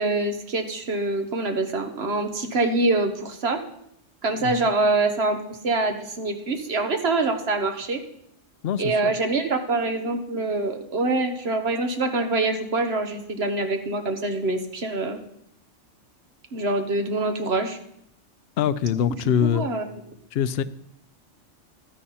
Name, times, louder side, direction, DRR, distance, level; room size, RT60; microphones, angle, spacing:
voice 1, 0.0-3.6 4.2-8.0 8.8-15.2 16.5-17.8 19.4-19.8, right 2 dB, 55° right, 1.6 m, -25 dB
voice 2, 8.6-9.1 18.6-19.6 20.3-20.6, left 8 dB, 60° left, 0.7 m, -23 dB
12.5 x 10.0 x 4.3 m
omnidirectional pair, 1.3 m